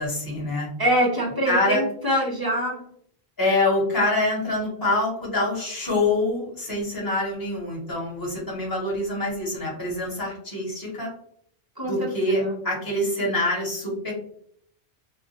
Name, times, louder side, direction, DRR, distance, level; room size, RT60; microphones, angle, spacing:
voice 1, 0.0-0.7 1.5-1.8 3.4-11.1 11.8-14.1, left 2 dB, 20° left, -4 dB, 0.9 m, -25 dB
voice 2, 0.8-2.8 11.8-12.6, right 1 dB, 30° right, -2 dB, 0.4 m, -24 dB
2.2 x 2.1 x 2.7 m, 0.64 s
omnidirectional pair, 1.1 m